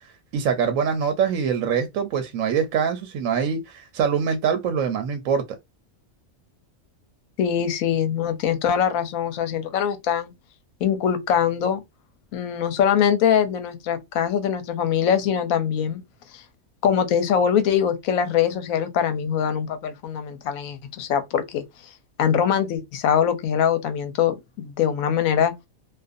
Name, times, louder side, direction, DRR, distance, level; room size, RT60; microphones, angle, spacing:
voice 1, 0.3-5.4, right 7 dB, 75° right, 0.9 m, -24 dB
voice 2, 7.4-10.3 10.8-11.8 12.3-16.0 16.3-16.4 16.8-21.6 22.2-25.5, left 8 dB, 80° left, 1.0 m, -23 dB
2.4 x 2.4 x 2.4 m
omnidirectional pair, 1.4 m